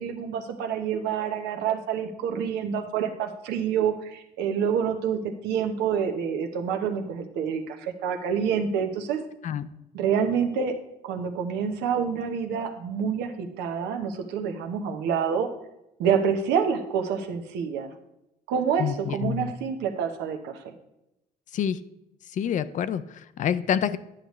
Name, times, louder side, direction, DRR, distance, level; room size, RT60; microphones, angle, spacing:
voice 1, 0.0-9.2 9.9-15.5 16.0-17.9 18.5-20.7, right 7 dB, 90° right, 5 dB, 0.9 m, -27 dB
voice 2, 18.8-19.5 21.5-21.8 22.3-24.0, left 9 dB, 50° left, 14 dB, 0.4 m, -27 dB
9.9 x 6.6 x 3.1 m, 0.87 s
cardioid pair, 110°, 17 cm